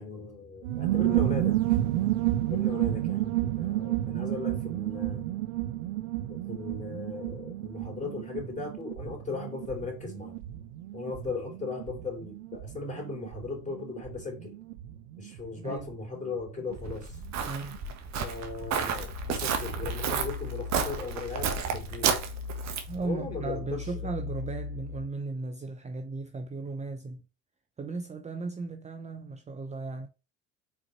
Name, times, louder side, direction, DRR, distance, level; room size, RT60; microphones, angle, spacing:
voice 1, 0.0-1.6 2.5-5.2 6.3-10.4 10.9-14.5 15.2-17.2 18.2-22.2 23.0-24.1, left 4 dB, 20° left, 3.6 m, -38 dB
sound 1, 0.6-16.9 17.2-17.3 17.5-17.9, right 14 dB, 80° right, 0.8 m, -31 dB
Walk footsteps, 16.7-23.0, right 6 dB, 50° right, 1.4 m, -32 dB
voice 2, 17.5-17.9 22.9-27.2 27.8-30.1, right 3 dB, 20° right, 0.7 m, -36 dB
sound 2, 19.1-25.1, left 5 dB, 40° left, 2.6 m, -39 dB
5.3 x 4.1 x 4.3 m
hypercardioid pair, 85°, 35 cm